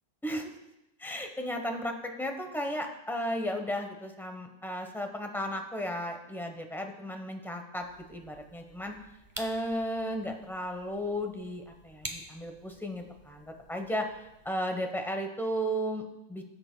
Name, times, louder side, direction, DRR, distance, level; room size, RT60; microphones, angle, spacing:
voice 1, 1.0-8.9 9.4-14.2 14.4-16.4, equal, ahead, 4 dB, 0.7 m, -34 dB
sound 1, 7.8-14.6, right 1 dB, 15° right, 1.0 m, -48 dB
19.5 x 7.8 x 2.2 m, 0.91 s
omnidirectional pair, 1.6 m